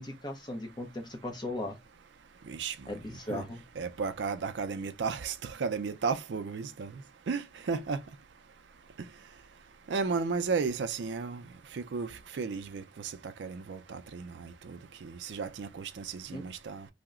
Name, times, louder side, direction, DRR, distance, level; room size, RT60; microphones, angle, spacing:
voice 1, 0.0-1.8 2.9-3.6 16.3-16.4, left 1 dB, 25° left, 0.7 m, -37 dB
voice 2, 3.8-6.9 7.3-8.0 9.9-11.4 11.7-16.9, right 5 dB, 85° right, 0.4 m, -34 dB
2.8 x 2.1 x 3.5 m
head